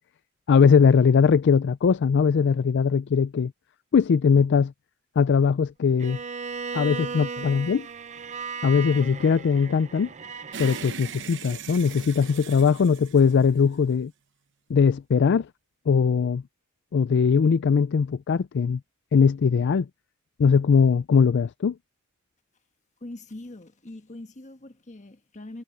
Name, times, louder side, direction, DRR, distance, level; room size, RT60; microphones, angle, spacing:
voice 1, 0.5-3.5 3.9-4.7 5.2-6.2 6.7-7.9 8.6-10.1 10.6-14.1 14.7-15.5 15.9-16.4 16.9-18.8 19.1-19.9 20.4-21.7, left 6 dB, 55° left, 0.4 m, -20 dB
Bowed string instrument, 6.0-10.9, right 5 dB, 35° right, 0.7 m, -36 dB
sound 1, 10.5-14.0, right 7 dB, 60° right, 0.9 m, -39 dB
voice 2, 23.0-25.6, left 1 dB, 35° left, 1.3 m, -42 dB
head